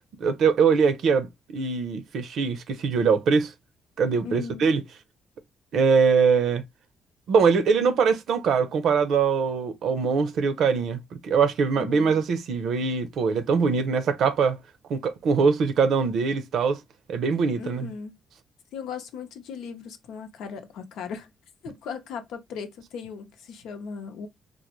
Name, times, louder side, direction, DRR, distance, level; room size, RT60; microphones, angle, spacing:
voice 1, 0.2-3.5 4.0-4.8 5.7-6.6 7.3-14.6 14.9-16.8 17.1-17.9, right 5 dB, 70° right, 0.6 m, -22 dB
voice 2, 4.2-4.7 11.7-12.2 17.6-18.2 18.7-21.3 21.6-24.3, left 6 dB, 85° left, 0.7 m, -37 dB
3.8 x 2.1 x 2.9 m
cardioid pair, 90°, 0 cm